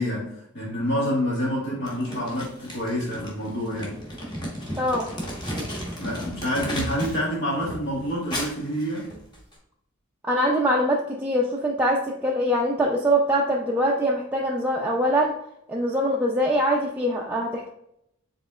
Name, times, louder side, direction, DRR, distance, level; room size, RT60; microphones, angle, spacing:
voice 1, 0.0-3.9 5.4-5.5 6.0-9.1, equal, 60° left, -6 dB, 1.6 m, -27 dB
Crumpling crinkling, 1.8-7.2 7.6-9.5, equal, 20° left, 1.3 m, -34 dB
voice 2, 4.8-5.1 10.2-15.3 15.7-17.7, equal, 10° right, -3 dB, 0.4 m, -23 dB
5.2 x 3.6 x 2.3 m, 0.77 s
head